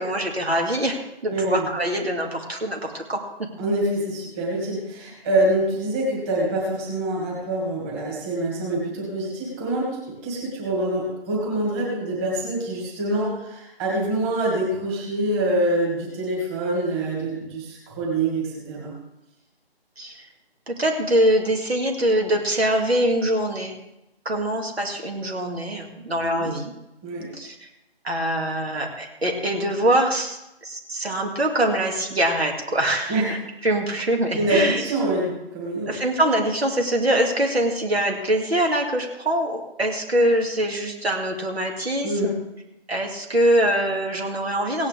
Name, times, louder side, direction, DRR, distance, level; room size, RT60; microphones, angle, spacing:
voice 1, 0.0-3.5 20.0-20.3 20.7-23.8 24.2-26.7 27.3-27.7 28.0-33.4 33.6-34.8 35.9-42.3 42.9-44.9, right 1 dB, 70° right, 2 dB, 2.7 m, -23 dB
voice 2, 1.3-1.6 3.6-18.9 26.2-26.5 27.0-27.3 33.1-33.3 34.3-35.9 42.0-42.3, right 1 dB, 15° right, -4 dB, 2.4 m, -25 dB
17.0 x 9.7 x 3.5 m, 0.90 s
figure-of-eight pair, 155°, 32 cm